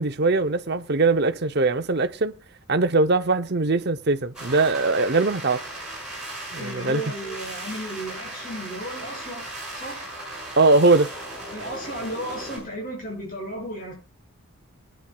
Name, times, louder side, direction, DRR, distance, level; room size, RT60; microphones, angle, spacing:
voice 1, 0.0-2.3 2.7-5.6 6.5-7.0 10.6-11.1, right 3 dB, 50° right, 0.8 m, -21 dB
sound 1, 4.3-12.6, right 1 dB, 5° right, 6.5 m, -37 dB
voice 2, 6.6-10.0 11.5-13.9, right 1 dB, 40° left, 6.7 m, -34 dB
22.5 x 10.0 x 2.4 m
head